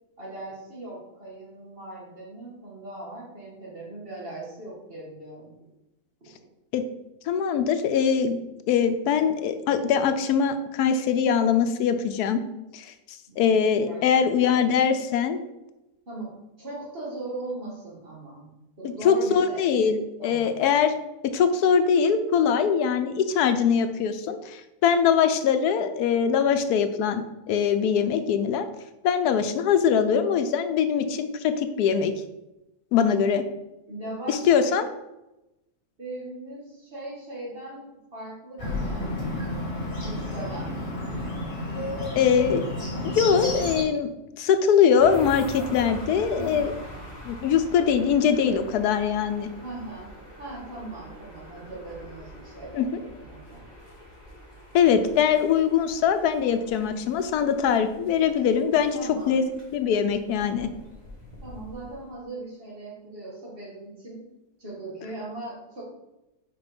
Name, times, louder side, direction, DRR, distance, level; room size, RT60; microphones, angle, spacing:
voice 1, 0.2-5.7 13.3-13.5 13.9-14.7 16.1-18.5 18.8-19.9 20.2-20.6 33.1-33.3 33.9-34.8 36.0-39.1 40.0-40.8 45.6-46.0 46.3-46.8 49.6-50.1 50.4-53.7 58.9-59.4 61.4-64.3 64.6-65.8, right 2 dB, 40° right, -4 dB, 2.1 m, -39 dB
voice 2, 7.3-8.4 8.7-12.4 12.7-15.4 19.0-20.9 21.3-28.7 29.0-32.1 32.9-33.4 34.3-34.9 42.2-42.6 43.1-44.1 44.4-46.7 47.2-49.5 52.7-52.9 54.7-59.0 59.3-60.7, left 7 dB, 85° left, 9 dB, 1.1 m, -22 dB
Bird, 38.6-43.8, left 1 dB, 40° left, 2.1 m, -31 dB
sound 1, 45.0-62.2, equal, 15° left, 1.9 m, -44 dB
5.0 x 4.8 x 5.2 m, 0.94 s
omnidirectional pair, 1.6 m